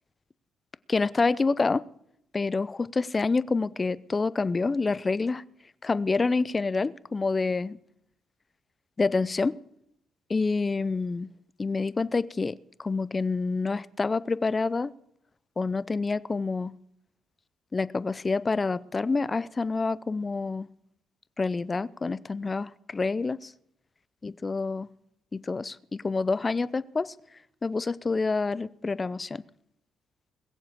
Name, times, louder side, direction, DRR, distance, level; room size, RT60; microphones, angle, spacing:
voice 1, 0.9-1.8 2.3-5.4 5.8-7.8 9.0-9.6 10.3-11.3 11.6-14.9 15.6-16.7 17.7-20.7 21.4-23.5 24.2-24.9 25.3-27.1 27.6-29.4, left 4 dB, 25° left, 19 dB, 0.5 m, -27 dB
21.0 x 7.3 x 6.7 m, 0.74 s
cardioid pair, 90°, 0 cm